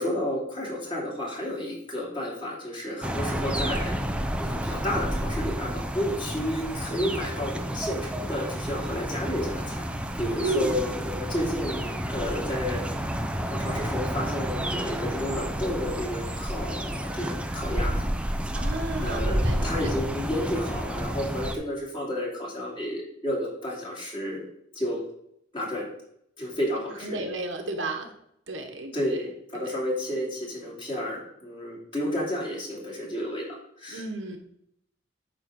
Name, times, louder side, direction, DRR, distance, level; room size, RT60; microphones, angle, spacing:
voice 1, 0.0-3.9 4.4-9.9 10.2-12.8 13.5-18.0 19.0-24.4 24.7-25.0 25.5-25.8 26.4-27.2 28.9-34.0, left 1 dB, 25° left, -4 dB, 2.7 m, -31 dB
sound 1, 3.0-21.6, equal, 5° right, 0.5 m, -30 dB
voice 2, 10.4-10.9 18.5-19.9 27.0-28.1 28.5-29.0 29.5-29.7 33.9-34.4, right 2 dB, 75° right, 4 dB, 1.2 m, -33 dB
9.0 x 3.8 x 6.3 m, 0.74 s
head